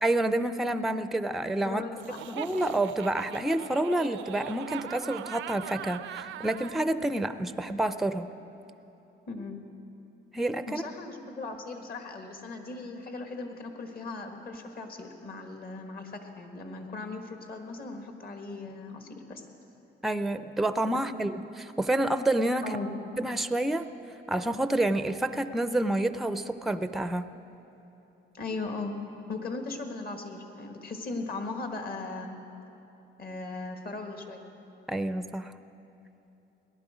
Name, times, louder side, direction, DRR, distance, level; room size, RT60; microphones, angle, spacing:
voice 1, 0.0-1.8 2.3-8.3 10.3-10.8 20.0-22.8 23.2-23.8 24.3-27.3 34.9-35.5, right 1 dB, ahead, 11 dB, 0.4 m, -28 dB
voice 2, 1.6-2.6 9.3-9.6 10.7-19.4 22.6-22.9 28.3-28.9 29.3-32.4 33.2-34.4, left 3 dB, 50° left, 4 dB, 1.6 m, -38 dB
Laughter, 2.0-6.8, right 12 dB, 75° right, 0.4 m, -41 dB
18.0 x 11.0 x 5.0 m, 2.9 s
cardioid pair, 90°, 20 cm